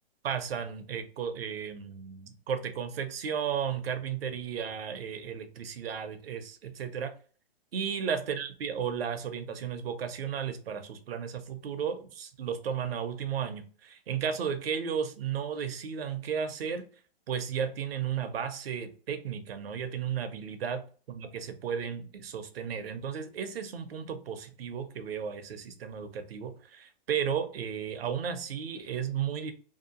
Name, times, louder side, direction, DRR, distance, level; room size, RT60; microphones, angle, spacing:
voice 1, 0.2-7.1 7.7-16.9 17.3-20.8 21.1-29.5, right 7 dB, 70° right, 9 dB, 0.6 m, -34 dB
2.8 x 2.4 x 2.5 m, 0.40 s
hypercardioid pair, 130°, 32 cm